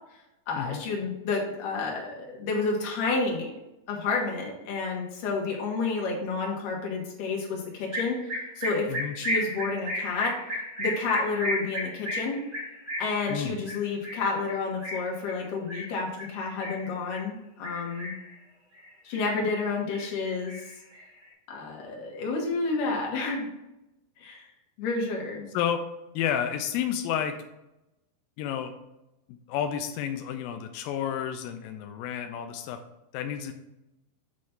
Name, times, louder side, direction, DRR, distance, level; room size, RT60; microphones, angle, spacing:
voice 1, 0.5-3.5 3.9-8.2 8.6-10.4 10.8-12.4 13.0-18.1 19.0-20.6 21.5-23.5 24.2-24.5 24.8-25.5, left 4 dB, 65° left, -2 dB, 2.9 m, -30 dB
sound 1, 7.9-17.3 17.6-18.4 18.7-19.7 19.9-21.3, equal, 35° right, 1.9 m, -34 dB
voice 2, 26.1-27.4 28.4-28.7 29.3-32.8 33.1-33.5, left 9 dB, 85° left, 6 dB, 2.0 m, -30 dB
7.9 x 3.2 x 5.8 m, 0.91 s
omnidirectional pair, 4.5 m